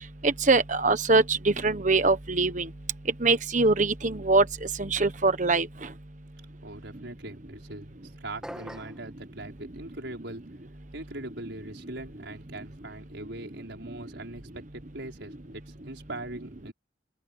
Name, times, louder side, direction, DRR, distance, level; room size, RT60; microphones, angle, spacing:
voice 1, 0.2-2.7 3.2-4.5 4.8-5.7, right 3 dB, 40° right, 1.2 m, -23 dB
voice 2, 6.6-10.4 10.9-16.7, right 2 dB, 70° right, 5.4 m, -41 dB
sound 1, 8.4-9.1, equal, 5° right, 2.3 m, -41 dB
head